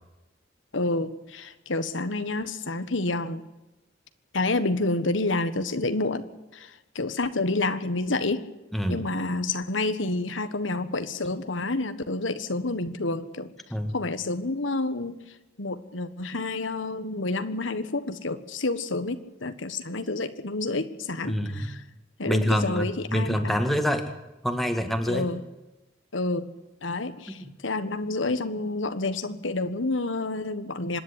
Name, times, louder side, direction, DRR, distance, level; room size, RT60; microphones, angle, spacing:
voice 1, 0.7-3.4 4.3-6.2 6.5-6.7 6.9-8.4 8.9-13.5 13.9-15.1 15.6-21.8 22.2-23.6 25.1-25.4 26.1-26.5 26.8-31.0, left 2 dB, 80° left, 10 dB, 1.5 m, -29 dB
voice 2, 8.7-9.1 13.7-13.9 21.2-21.7 22.3-24.1 24.4-25.3 27.3-27.5, equal, ahead, 6 dB, 2.0 m, -26 dB
25.5 x 11.0 x 10.0 m, 1.0 s
head